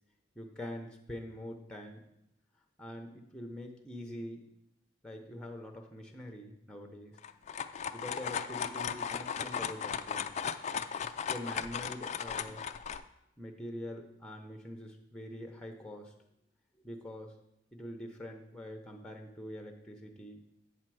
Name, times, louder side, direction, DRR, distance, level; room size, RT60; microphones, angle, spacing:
voice 1, 0.4-2.0 2.8-4.5 5.0-7.1 7.9-10.3 11.3-12.6 13.4-16.1 16.8-17.3 17.7-20.4, left 1 dB, 5° left, 4 dB, 0.7 m, -44 dB
sound 1, 7.2-13.0, left 7 dB, 40° left, 0.3 m, -36 dB
8.3 x 4.4 x 6.1 m, 0.81 s
head